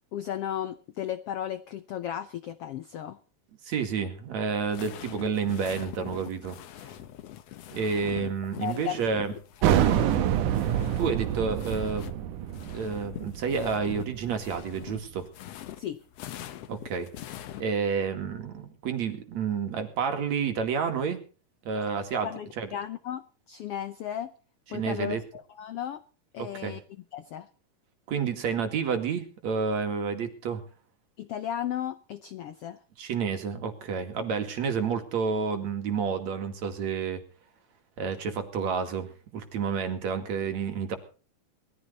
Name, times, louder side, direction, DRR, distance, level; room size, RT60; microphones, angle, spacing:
voice 1, 0.1-3.2 8.6-9.2 9.6-10.0 15.8-16.0 22.2-24.3 24.7-26.0 26.3-26.8 27.1-27.5 31.2-32.8, left 10 dB, 90° left, 13 dB, 1.3 m, -35 dB
voice 2, 3.7-6.6 7.7-9.3 10.6-10.7 11.0-12.2 12.7-15.3 16.7-17.1 17.6-21.2 21.6-22.3 22.6-22.7 24.7-25.2 26.4-26.8 28.1-30.6 33.0-37.2 38.0-41.0, right 6 dB, 55° right, 7 dB, 3.4 m, -30 dB
sound 1, 4.5-12.2 12.4-17.6, left 11 dB, 65° left, 1.7 m, -43 dB
sound 2, 9.6-14.9, right 11 dB, 70° right, 2.4 m, -27 dB
20.5 x 14.5 x 4.1 m, 0.37 s
omnidirectional pair, 3.9 m